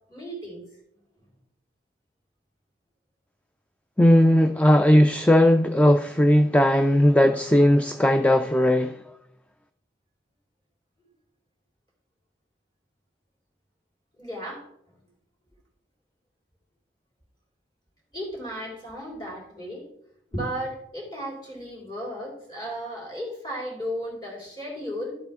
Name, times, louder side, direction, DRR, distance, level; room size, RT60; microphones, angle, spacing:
voice 1, 0.1-0.7 14.2-14.6 18.1-19.8 20.3-25.2, equal, 25° left, 3.6 m, -34 dB
voice 2, 4.0-9.0, left 1 dB, 10° left, 0.3 m, -18 dB
12.5 x 7.9 x 3.6 m
head